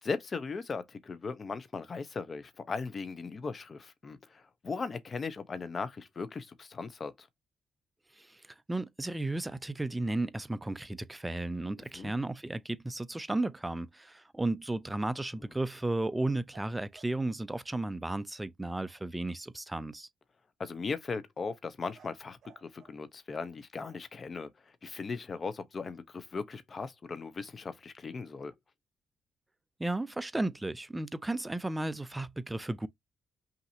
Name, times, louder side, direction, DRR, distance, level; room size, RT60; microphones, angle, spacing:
voice 1, 0.0-7.3 11.8-12.1 20.6-28.5, left 4 dB, 40° left, 0.9 m, -38 dB
voice 2, 8.7-20.1 29.8-32.9, right 2 dB, 15° right, 0.5 m, -34 dB
sound 1, 16.5-17.2 21.9-23.0 23.8-24.8, right 7 dB, 60° right, 1.9 m, -59 dB
5.7 x 2.9 x 2.8 m
cardioid pair, 90°, 0 cm